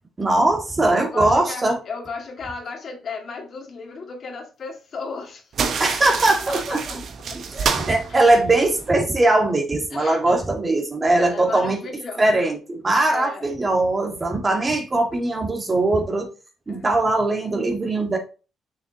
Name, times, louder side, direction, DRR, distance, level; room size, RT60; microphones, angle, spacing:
voice 1, 0.2-1.8 5.8-6.8 7.3-11.8 12.2-16.3 16.7-18.2, right 2 dB, 25° right, 1.8 m, -20 dB
voice 2, 0.9-7.0 8.1-8.2 9.9-10.4 11.2-12.4 13.1-13.4 16.7-16.9, left 4 dB, 55° left, 2.2 m, -35 dB
sound 1, 5.5-8.9, right 6 dB, 60° right, 1.1 m, -28 dB
6.6 x 6.5 x 2.9 m
cardioid pair, 90°, 0 cm